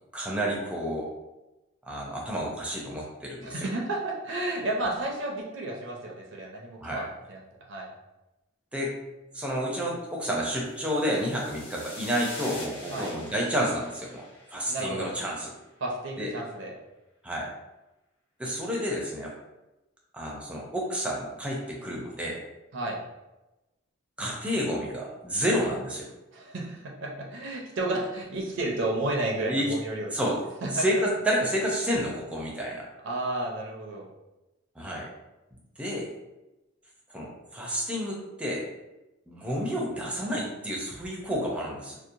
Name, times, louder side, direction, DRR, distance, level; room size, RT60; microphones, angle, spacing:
voice 1, 0.1-1.1 1.8-3.7 6.8-7.1 8.7-9.0 9.3-15.5 16.2-16.3 17.2-17.5 18.4-19.3 20.1-22.4 24.2-26.1 29.5-29.7 30.1-30.4 30.7-32.9 34.8-35.1 35.8-36.1 37.1-38.7 39.3-42.0, equal, 5° right, -3 dB, 0.5 m, -30 dB
voice 2, 3.4-7.4 7.7-7.9 12.9-13.1 14.7-15.1 15.8-16.7 22.7-23.0 26.3-30.1 30.6-30.8 33.0-34.1, right 2 dB, 65° right, -2 dB, 0.5 m, -32 dB
sound 1, 10.6-15.1, left 1 dB, 90° left, 1.2 m, -44 dB
2.8 x 2.0 x 2.5 m, 1.0 s
head